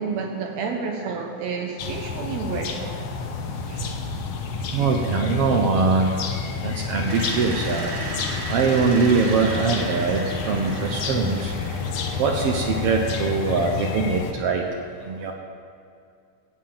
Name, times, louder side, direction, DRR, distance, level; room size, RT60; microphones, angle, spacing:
voice 1, 0.0-3.0 3.7-3.9, right 5 dB, 70° right, 3 dB, 1.8 m, -30 dB
sound 1, 1.8-14.3, left 5 dB, 65° left, 1.8 m, -30 dB
voice 2, 4.7-11.5 12.2-15.3, right 4 dB, 85° right, 2 dB, 1.3 m, -23 dB
sound 2, 7.1-14.1, right 2 dB, 40° right, 0.9 m, -36 dB
15.0 x 5.6 x 8.6 m, 2.3 s
omnidirectional pair, 3.7 m